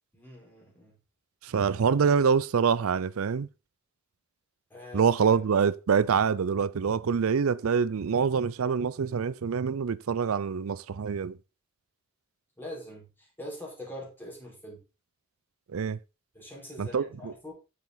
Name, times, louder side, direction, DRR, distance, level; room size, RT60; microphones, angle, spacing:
voice 1, 0.1-1.0 4.7-5.4 12.6-14.8 16.3-17.5, left 1 dB, 10° left, 4.5 m, -43 dB
voice 2, 1.4-3.5 4.9-11.4 15.7-16.0 16.8-17.3, right 6 dB, 90° right, 0.5 m, -25 dB
9.5 x 7.1 x 3.9 m
head